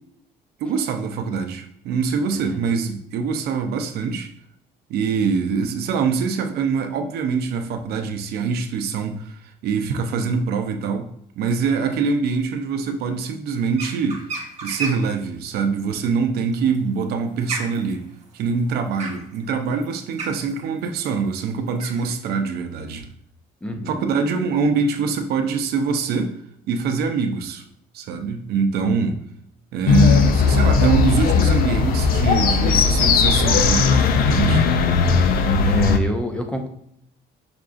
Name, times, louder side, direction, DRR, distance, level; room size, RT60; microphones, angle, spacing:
voice 1, 0.6-4.3 4.9-11.1 11.4-14.3 14.6-23.1 23.9-26.4 26.7-27.6 27.9-29.2 29.7-34.7, right 5 dB, 70° right, 6 dB, 0.5 m, -24 dB
voice 2, 2.3-2.7 23.6-24.1 35.6-36.7, equal, 5° left, 4 dB, 0.5 m, -28 dB
sound 1, 13.7-15.1 16.5-22.1, right 3 dB, 45° right, 1.0 m, -33 dB
sound 2, 29.9-36.0, left 5 dB, 60° left, 0.4 m, -17 dB
5.8 x 2.3 x 2.5 m, 0.72 s
cardioid pair, 110°, 17 cm